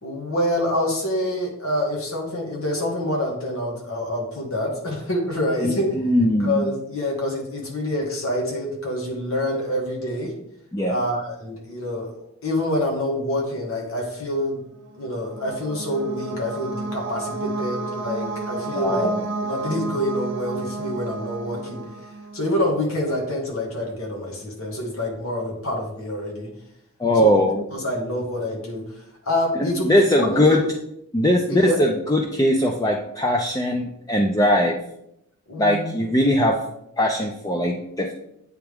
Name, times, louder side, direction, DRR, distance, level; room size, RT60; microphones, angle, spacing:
voice 1, 0.0-5.9 6.4-10.3 10.9-12.1 12.4-14.6 15.0-19.1 19.4-21.8 22.3-26.5 27.1-27.3 27.7-28.8 29.2-30.6 31.5-31.8 35.5-35.9, left 1 dB, 75° left, -1 dB, 1.7 m, -26 dB
voice 2, 5.6-6.6 10.7-11.0 18.8-19.2 27.0-27.6 29.6-30.6 31.1-34.8 35.6-36.6 37.0-38.1, left 1 dB, 15° left, 1 dB, 0.4 m, -20 dB
sound 1, 14.9-22.7, right 3 dB, 60° right, 0.7 m, -31 dB
8.6 x 3.4 x 3.5 m, 0.77 s
head